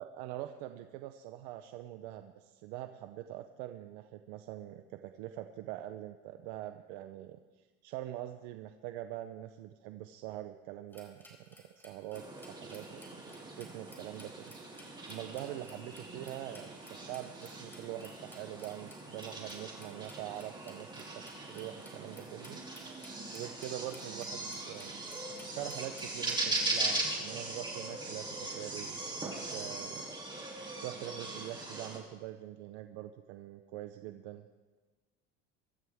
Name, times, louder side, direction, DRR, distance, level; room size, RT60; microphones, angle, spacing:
voice 1, 0.0-13.0 13.6-14.5 15.1-21.2 21.5-22.6 23.3-25.0 25.3-30.0 30.3-34.4, right 13 dB, 85° right, 8 dB, 0.8 m, -44 dB
sound 1, 10.9-26.7, equal, 5° left, 3.8 m, -57 dB
sound 2, 12.1-32.0, right 2 dB, 15° right, 3.0 m, -40 dB
24.0 x 13.0 x 3.6 m, 1.3 s
cardioid pair, 130°, 32 cm